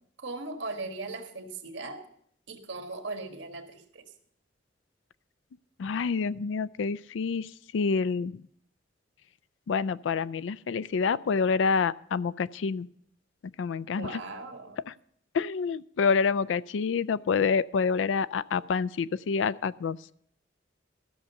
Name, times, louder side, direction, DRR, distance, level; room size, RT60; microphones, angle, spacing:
voice 1, 0.2-2.0 2.5-4.0 14.0-14.8, right 3 dB, 90° right, 5 dB, 1.7 m, -38 dB
voice 2, 5.8-8.4 9.7-12.9 13.6-14.2 14.9-15.0 15.3-20.1, left 5 dB, 85° left, 18 dB, 0.4 m, -27 dB
13.5 x 6.5 x 6.8 m, 0.69 s
head